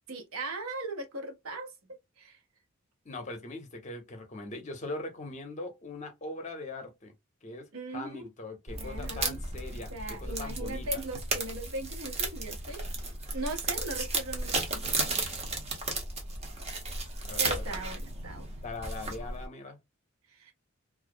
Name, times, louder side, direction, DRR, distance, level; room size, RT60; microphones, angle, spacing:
voice 1, 0.1-1.7 2.2-2.4 7.7-8.3 8.7-9.4 9.9-12.8 13.3-15.2 17.4-18.5 20.3-20.5, right 2 dB, 85° right, 0.8 m, -39 dB
voice 2, 3.0-7.1 7.4-11.0 17.2-17.7 18.6-19.8, left 2 dB, 35° left, 0.7 m, -41 dB
sound 1, 8.7-19.5, right 3 dB, 30° right, 0.7 m, -34 dB
2.4 x 2.0 x 2.5 m
head